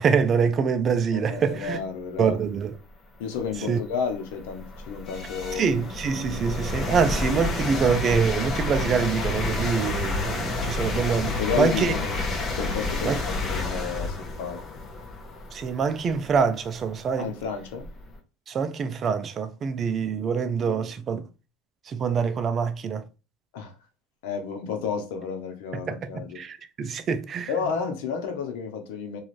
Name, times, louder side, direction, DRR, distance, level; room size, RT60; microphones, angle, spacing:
voice 1, 0.0-1.8 2.2-2.8 3.7-3.8 5.6-11.9 13.0-13.2 15.5-17.3 18.5-21.2 21.9-23.0 25.9-27.5, right 6 dB, 40° right, 0.4 m, -25 dB
voice 2, 1.1-2.4 3.2-5.8 11.3-12.2 12.6-14.6 17.2-17.9 23.5-23.7 24.2-26.4 27.5-29.2, left 6 dB, 85° left, 0.7 m, -31 dB
sound 1, 2.7-2.8 3.4-18.1, left 3 dB, 30° left, 0.8 m, -30 dB
2.5 x 2.3 x 3.1 m
supercardioid pair, 110°, 0 cm